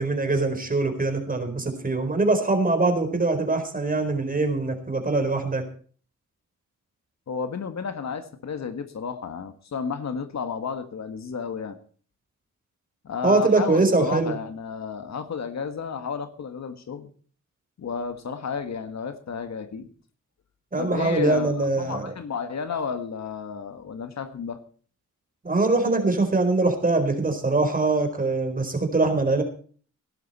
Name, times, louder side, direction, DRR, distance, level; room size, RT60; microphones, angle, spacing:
voice 1, 0.0-5.7 13.2-14.4 20.7-22.1 25.4-29.4, right 3 dB, 25° right, 7 dB, 4.4 m, -23 dB
voice 2, 7.3-11.8 13.0-17.1 17.8-19.9 20.8-24.6, left 6 dB, 60° left, 9 dB, 1.8 m, -32 dB
17.5 x 12.0 x 4.3 m, 0.43 s
cardioid pair, 90°, 31 cm